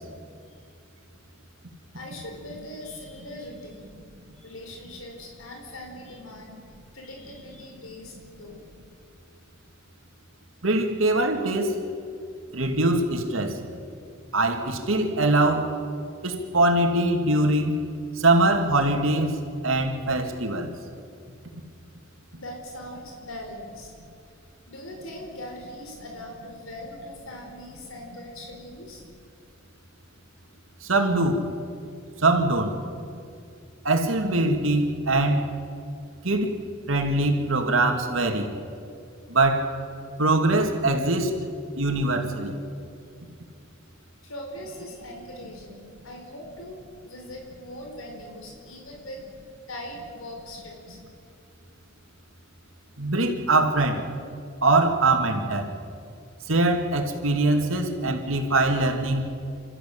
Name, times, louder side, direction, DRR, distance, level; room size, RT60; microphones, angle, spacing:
voice 1, 1.9-4.0 4.4-6.6 6.9-8.6 22.3-23.9 24.7-29.0 44.2-49.2 49.7-51.0, left 1 dB, 85° left, 1 dB, 4.5 m, -41 dB
voice 2, 10.6-11.7 12.5-13.6 14.3-15.7 16.2-17.8 18.2-19.4 19.6-20.7 30.8-31.4 32.2-32.7 33.8-35.5 36.2-36.5 36.9-38.5 39.3-39.7 40.2-41.3 41.8-42.5 53.0-54.0 54.6-55.7 56.5-59.3, right 2 dB, 80° right, 4 dB, 2.6 m, -22 dB
28.5 x 14.0 x 8.8 m, 2.4 s
head